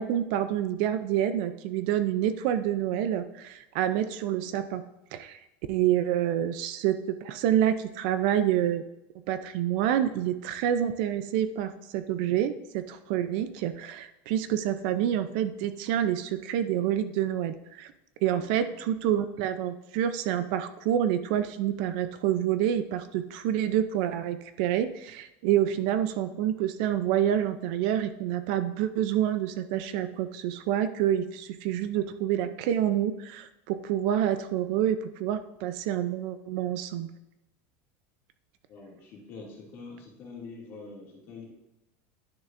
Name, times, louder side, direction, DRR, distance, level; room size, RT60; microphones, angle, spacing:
voice 1, 0.0-4.8 5.1-5.4 5.7-8.8 9.3-17.9 18.2-37.1, right 10 dB, 50° right, 11 dB, 0.4 m, -27 dB
voice 2, 18.3-18.8 25.6-25.7 38.7-41.5, left 4 dB, 35° left, -3 dB, 2.2 m, -45 dB
11.0 x 6.6 x 2.5 m, 0.90 s
supercardioid pair, 180°, 7 cm